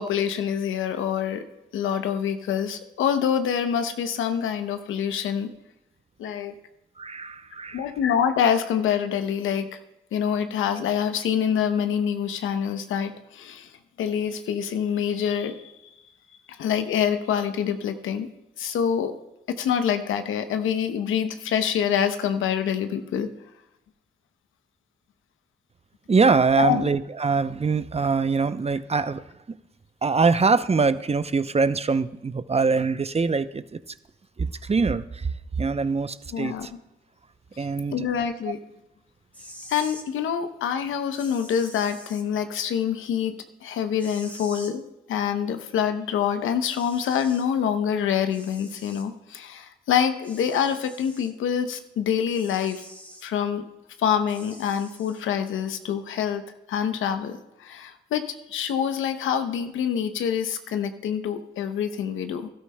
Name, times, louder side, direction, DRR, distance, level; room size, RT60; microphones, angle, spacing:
voice 1, 0.0-1.4 1.7-5.5 6.2-6.5 7.7-9.8 10.1-13.7 14.0-15.9 16.5-18.3 18.6-19.1 19.5-23.3 26.6-26.9 36.3-36.8 37.6-38.6 39.7-44.8 45.1-52.8 53.2-53.6 54.0-56.4 56.7-62.5, left 8 dB, 80° left, 9 dB, 0.8 m, -26 dB
voice 2, 7.0-7.9 26.1-29.2 30.0-33.8 34.4-36.7 37.6-38.1, right 4 dB, 30° right, 13 dB, 0.6 m, -23 dB
sound 1, 39.2-40.1 41.2-42.2 44.0-44.7 46.2-46.3 46.7-47.5 48.3-49.1 50.2-51.3 52.3-53.3 54.3-55.2, equal, 5° left, 1.8 m, -45 dB
17.0 x 12.5 x 2.2 m, 0.93 s
supercardioid pair, 40°, 20 cm